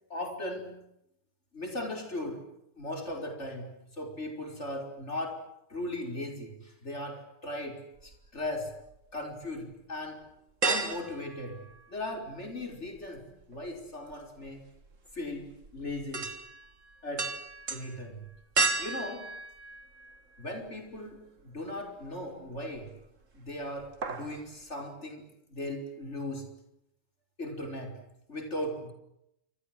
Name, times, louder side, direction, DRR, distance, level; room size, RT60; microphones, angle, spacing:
voice 1, 0.1-0.8 1.5-2.4 2.8-8.7 9.1-10.3 10.7-14.6 15.1-16.3 17.0-17.3 17.7-18.3 18.8-19.4 20.4-22.9 23.3-26.6 27.4-28.0 28.3-28.9, left 1 dB, 40° left, 4 dB, 5.6 m, -38 dB
sound 1, 8.0-9.0 9.4-9.5 10.6-12.3 12.6-20.5 20.9-21.0 22.5-23.1 23.3-23.6 23.8-24.4 24.7-24.8, right 3 dB, 45° right, 2.3 m, -34 dB
28.5 x 25.5 x 7.7 m, 0.80 s
omnidirectional pair, 1.9 m